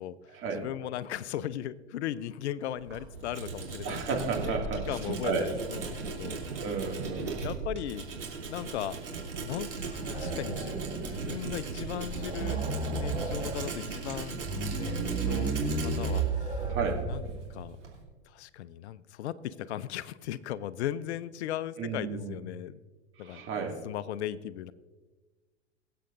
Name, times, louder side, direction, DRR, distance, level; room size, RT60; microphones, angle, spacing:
voice 1, 0.5-4.0 4.4-4.6 4.9-6.4 7.1-8.1 8.5-9.0 9.4-9.7 10.1-12.6 12.9-14.4 14.7-16.7 17.1-17.2 17.5-17.8 18.3-22.8 23.2-23.4 23.8-24.7, left 11 dB, 70° left, 16 dB, 0.6 m, -37 dB
Tools, 2.6-18.0, right 4 dB, 90° right, 3.0 m, -38 dB
voice 2, 3.8-5.4 6.6-7.4 16.7-16.9 21.8-22.4 23.2-23.7, right 5 dB, 35° right, 1 dB, 2.3 m, -32 dB
sound 1, 9.9-11.4 11.7-11.8 12.1-13.6 14.3-17.4, right 3 dB, 15° right, 1.5 m, -33 dB
23.0 x 7.8 x 2.6 m, 1.3 s
hypercardioid pair, 95°, 35 cm